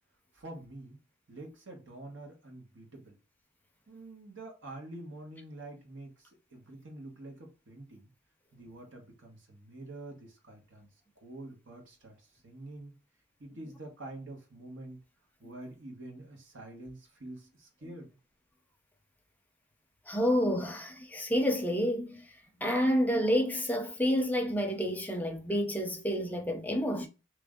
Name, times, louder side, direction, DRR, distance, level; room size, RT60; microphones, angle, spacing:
voice 1, 0.3-1.0 1.3-3.2 3.9-8.1 8.5-10.9 11.2-12.9 13.4-15.0 15.4-18.1, right 2 dB, 75° right, 1.1 m, -47 dB
voice 2, 20.1-22.3 22.6-27.1, equal, 10° left, 0.5 m, -29 dB
3.1 x 2.5 x 3.6 m
head